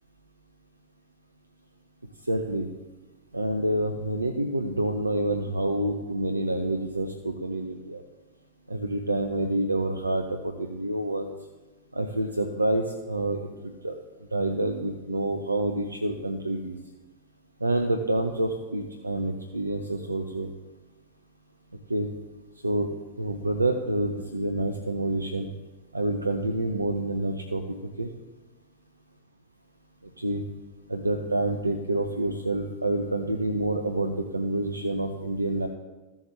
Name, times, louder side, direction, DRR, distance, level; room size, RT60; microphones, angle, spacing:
voice 1, 2.2-2.7 3.3-8.0 8.7-11.3 11.9-13.9 14.3-16.8 17.6-20.5 21.9-22.1 22.6-25.5 25.9-28.1 30.0-30.4 30.9-35.7, right 1 dB, 85° right, 5 dB, 0.6 m, -28 dB
14.5 x 7.1 x 3.2 m, 1.1 s
figure-of-eight pair, 90°, 0 cm